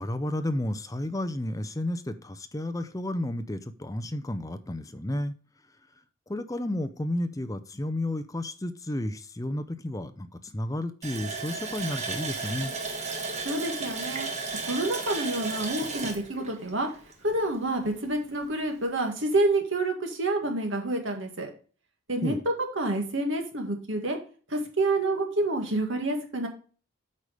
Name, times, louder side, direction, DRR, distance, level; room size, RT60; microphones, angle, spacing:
voice 1, 0.0-5.3 6.3-12.7 22.2-22.4, left 1 dB, 15° left, 0.6 m, -32 dB
Water tap faucet, 11.0-17.5 17.8-17.9 18.4-18.6, right 4 dB, 35° right, 1.3 m, -34 dB
voice 2, 13.4-14.3 14.6-16.9 17.2-21.5 22.1-22.3 22.8-24.2 24.5-26.5, right 2 dB, 60° right, 2.0 m, -28 dB
8.5 x 4.9 x 5.0 m
head